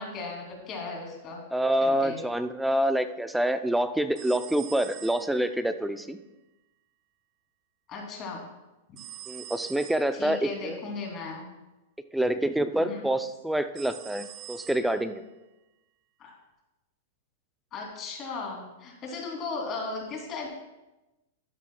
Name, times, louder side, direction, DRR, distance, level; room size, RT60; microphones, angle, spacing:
voice 1, 0.0-1.4 1.8-2.2 7.9-8.4 10.1-11.5 12.8-13.0 16.2-16.3 17.7-20.5, left 3 dB, 30° left, 0 dB, 2.7 m, -36 dB
voice 2, 1.5-6.2 9.3-10.8 12.1-15.2, right 1 dB, 5° right, 10 dB, 0.4 m, -27 dB
sound 1, 4.1-5.7 9.0-10.2 13.7-15.1, right 13 dB, 40° right, 0.7 m, -45 dB
12.5 x 9.2 x 2.3 m, 1.0 s
hypercardioid pair, 135°, 0 cm